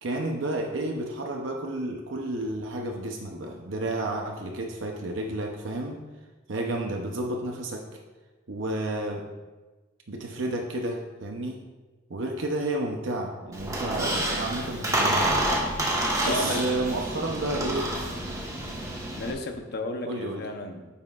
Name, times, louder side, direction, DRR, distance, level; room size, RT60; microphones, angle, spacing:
voice 1, 0.0-6.0 6.5-7.9 8.5-9.2 10.1-11.6 12.1-15.4 16.2-18.0 20.0-20.5, right 1 dB, 70° right, 1 dB, 0.7 m, -31 dB
Squeak, 13.5-19.3, right 1 dB, 15° right, 1.3 m, -28 dB
voice 2, 16.2-16.9 19.1-20.9, left 1 dB, 55° left, 5 dB, 0.9 m, -33 dB
9.3 x 7.1 x 2.4 m, 1.2 s
head